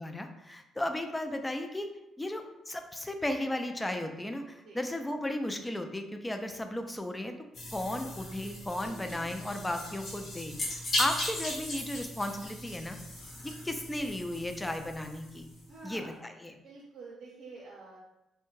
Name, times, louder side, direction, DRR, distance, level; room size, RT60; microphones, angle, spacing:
voice 1, 0.0-1.9 2.2-7.3 7.7-13.0 13.4-15.5 15.8-16.5, left 1 dB, 15° left, 6 dB, 0.3 m, -35 dB
sound 1, 7.5-15.7, left 1 dB, 55° left, 0.9 m, -38 dB
voice 2, 8.8-9.4 15.7-16.2 16.5-18.0, right 3 dB, 65° right, -5 dB, 0.6 m, -49 dB
2.6 x 2.1 x 3.0 m, 0.92 s
cardioid pair, 90°, 0 cm